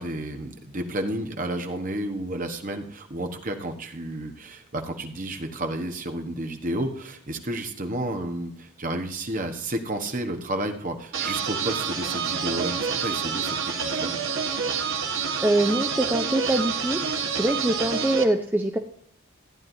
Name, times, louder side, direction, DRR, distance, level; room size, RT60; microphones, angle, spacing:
voice 1, 0.0-14.1, right 1 dB, 35° right, 5 dB, 1.1 m, -31 dB
sound 1, 11.1-18.2, right 6 dB, 60° right, 1.4 m, -28 dB
voice 2, 15.4-17.0 17.4-18.8, right 1 dB, 10° right, 4 dB, 0.5 m, -23 dB
15.0 x 9.6 x 2.7 m, 0.64 s
head